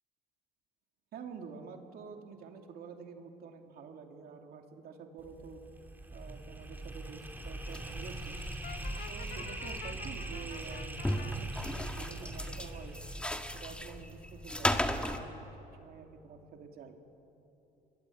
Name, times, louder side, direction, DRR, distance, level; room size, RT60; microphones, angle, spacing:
voice 1, 1.1-5.6 6.1-8.4 9.1-12.9 13.5-15.5 15.8-17.0, right 5 dB, 65° right, 4 dB, 2.7 m, -48 dB
sound 1, 5.2-14.3, right 2 dB, 10° right, 2.5 m, -43 dB
sound 2, 7.6-15.2, left 1 dB, 5° left, 1.8 m, -37 dB
Brass instrument, 8.6-11.3, left 10 dB, 60° left, 1.2 m, -49 dB
28.5 x 22.0 x 8.5 m, 2.9 s
cardioid pair, 110°, 17 cm